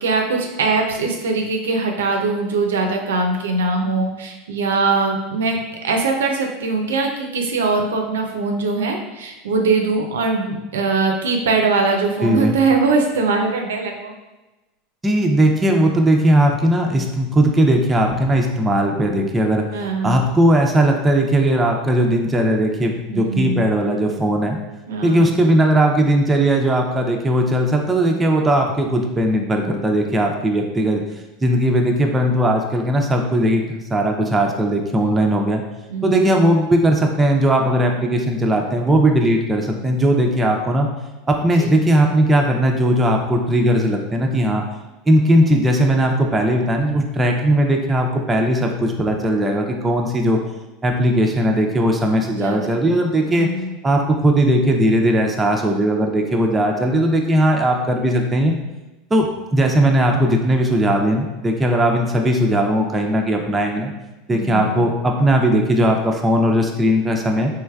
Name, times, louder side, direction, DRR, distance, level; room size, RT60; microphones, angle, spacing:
voice 1, 0.0-14.1 19.7-20.2 23.1-23.6 24.9-25.3 35.0-35.1 35.9-36.2 41.5-41.7 52.3-53.7 64.3-64.9, right 3 dB, 85° right, 3 dB, 0.4 m, -21 dB
voice 2, 12.2-12.6 15.0-19.6 20.0-24.6 25.0-31.0 31.4-35.6 36.0-40.9 41.3-44.6 45.1-50.4 50.8-53.5 53.8-58.5 59.1-63.9 64.3-67.5, right 1 dB, 15° right, 1 dB, 0.5 m, -18 dB
3.2 x 3.1 x 2.3 m, 1.1 s
hypercardioid pair, 95°, 0 cm